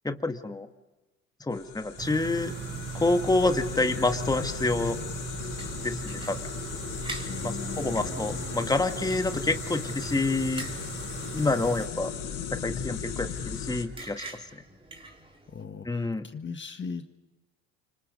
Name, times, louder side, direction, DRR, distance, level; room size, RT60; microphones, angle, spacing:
voice 1, 0.0-0.7 1.4-2.5 2.9-5.0 5.8-6.5 7.4-10.7 11.3-12.1 12.5-14.3 15.9-16.3, left 2 dB, 10° left, 7 dB, 1.7 m, -27 dB
sound 1, 1.5-13.8, left 7 dB, 65° left, 5.2 m, -37 dB
sound 2, 2.0-11.9, right 8 dB, 35° right, 1.0 m, -39 dB
sound 3, 5.6-15.6, right 2 dB, 15° right, 4.0 m, -46 dB
voice 2, 7.3-8.6 15.5-17.1, left 5 dB, 30° left, 7 dB, 1.6 m, -39 dB
29.0 x 25.5 x 5.4 m, 1.1 s
supercardioid pair, 75°, 35 cm